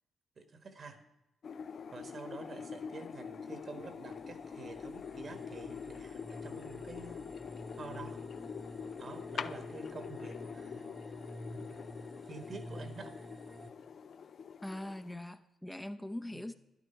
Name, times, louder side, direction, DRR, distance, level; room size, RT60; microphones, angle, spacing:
voice 1, 0.4-1.0 1.9-7.2 7.7-8.2 9.0-10.9 11.5-11.7 12.3-13.1 16.3-16.4, right 4 dB, 55° right, 8 dB, 1.6 m, -48 dB
sound 1, 1.4-15.2, left 6 dB, 60° left, 0.4 m, -45 dB
sound 2, 3.2-13.7, equal, 25° right, 1.1 m, -50 dB
voice 2, 14.6-16.5, left 1 dB, 10° left, 7 dB, 0.7 m, -42 dB
11.0 x 11.0 x 4.5 m, 0.93 s
hypercardioid pair, 45°, 0 cm